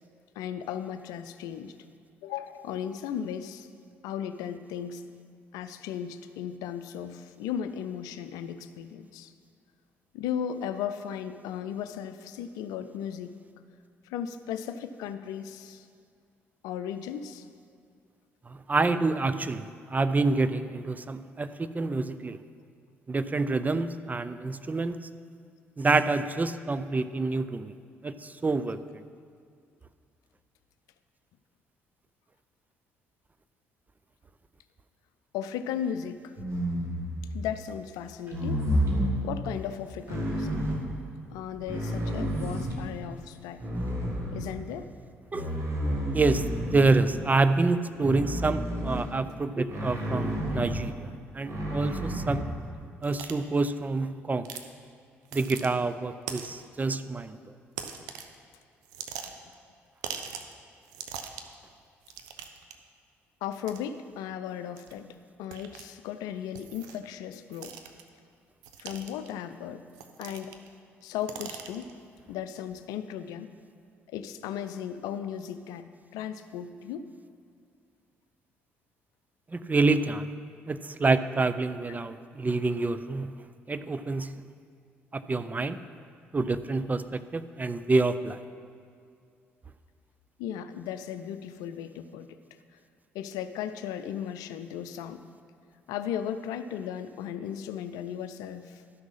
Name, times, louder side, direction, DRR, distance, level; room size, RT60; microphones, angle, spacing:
voice 1, 0.4-1.8 2.2-3.7 4.0-5.0 5.5-9.3 10.1-13.4 14.0-15.9 16.6-17.5 35.3-36.4 37.3-38.6 39.2-40.6 41.3-43.6 44.3-44.9 59.3-59.4 63.4-65.1 65.4-67.8 68.8-69.8 70.2-70.6 71.0-71.9 72.3-73.5 74.1-77.1 90.4-92.4 92.7-92.8 93.1-95.2 95.9-98.8, left 9 dB, 70° left, 11 dB, 0.5 m, -36 dB
voice 2, 18.5-22.4 23.1-25.0 25.8-27.8 28.0-29.0 45.3-45.5 46.1-52.5 53.0-54.5 55.3-57.4 79.5-80.3 80.7-83.4 83.7-84.4 85.1-85.8 86.3-88.4, right 3 dB, 25° right, 12 dB, 0.5 m, -27 dB
sound 1, 36.4-37.4 38.3-39.2 40.1-40.9 41.5-42.9 43.6-44.7 45.3-47.2 48.0-49.1 49.7-50.8 51.5-52.5, equal, 45° right, 2.0 m, -30 dB
sound 2, 53.0-53.3 54.4-54.7 55.2-55.7 56.3-56.6 57.7-58.3 58.8-59.5 60.0-60.5 60.8-61.5 62.0-62.7 63.6-63.8 64.8-64.9 65.5-65.8 66.5-67.0 67.5-68.0 68.6-69.3 69.9-70.7 71.0-71.9, right 8 dB, 70° right, 0.7 m, -40 dB
12.5 x 6.1 x 5.6 m, 2.3 s
hypercardioid pair, 45°, 7 cm